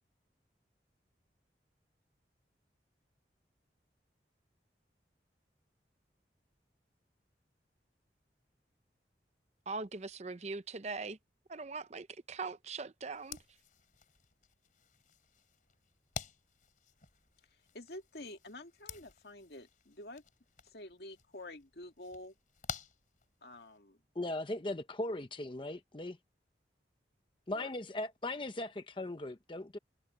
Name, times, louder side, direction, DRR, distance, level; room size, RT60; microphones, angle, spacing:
voice 1, 9.7-11.2 11.5-13.4, right 4 dB, 40° right, 0.7 m, -41 dB
sound 1, 13.1-23.8, left 6 dB, 50° left, 3.9 m, -50 dB
voice 2, 17.7-20.2 20.6-22.3 23.4-24.0 27.5-27.7, left 1 dB, 65° left, 2.0 m, -49 dB
voice 3, 24.1-26.2 27.5-29.8, left 1 dB, 30° left, 0.8 m, -38 dB
head